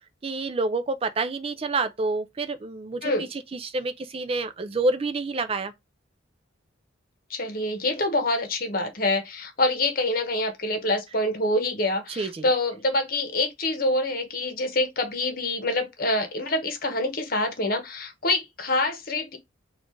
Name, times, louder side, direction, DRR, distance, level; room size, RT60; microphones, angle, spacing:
voice 1, 0.2-5.7 12.1-12.4, right 3 dB, 30° right, 0.4 m, -28 dB
voice 2, 7.3-19.4, left 2 dB, 45° left, 1.1 m, -26 dB
4.1 x 2.5 x 3.1 m
head